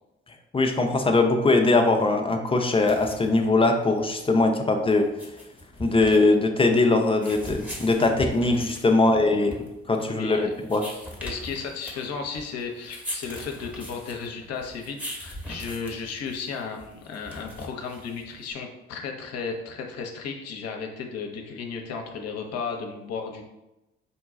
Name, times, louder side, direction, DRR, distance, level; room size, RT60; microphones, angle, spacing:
voice 1, 0.5-5.1 5.8-10.8, left 2 dB, 20° left, 3 dB, 0.5 m, -21 dB
sound 1, 2.6-18.5, equal, 5° right, 1.0 m, -41 dB
voice 2, 10.0-10.5 11.2-23.4, left 5 dB, 55° left, 3 dB, 0.7 m, -34 dB
4.0 x 2.3 x 3.7 m, 0.95 s
figure-of-eight pair, 45°, 31 cm